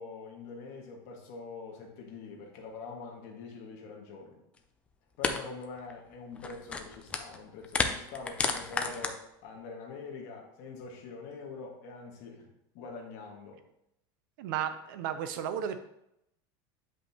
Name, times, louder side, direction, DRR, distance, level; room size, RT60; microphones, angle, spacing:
voice 1, 0.0-4.4 5.2-12.5 12.7-13.6, left 4 dB, 50° left, 0 dB, 1.6 m, -44 dB
sound 1, 4.6-4.7 5.2-5.4 5.6-5.9 6.3-7.4 7.6-9.1, left 4 dB, 10° left, 0.4 m, -31 dB
voice 2, 14.4-15.8, right 9 dB, 65° right, 9 dB, 0.6 m, -33 dB
8.4 x 5.3 x 2.9 m, 0.80 s
supercardioid pair, 175°, 12 cm